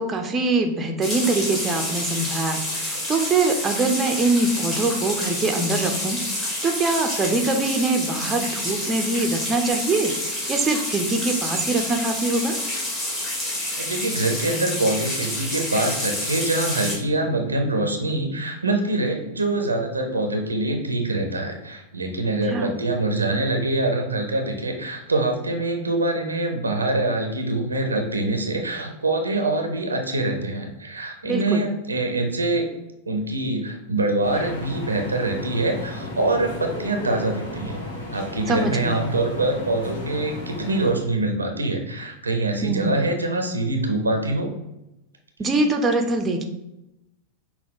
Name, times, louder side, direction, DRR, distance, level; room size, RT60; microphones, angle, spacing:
voice 1, 0.0-12.5 22.5-22.7 31.2-31.7 38.5-39.0 42.6-43.0 45.4-46.4, right 3 dB, 20° right, 4 dB, 0.6 m, -23 dB
sound 1, 1.0-17.0, left 1 dB, 20° left, 1.6 m, -28 dB
voice 2, 13.8-32.6 33.1-37.8 38.1-44.5, right 2 dB, 80° right, 4 dB, 0.6 m, -24 dB
sound 2, 34.2-40.9, left 2 dB, 60° left, 1.1 m, -34 dB
5.9 x 2.2 x 3.6 m, 0.91 s
figure-of-eight pair, 90°, 0 cm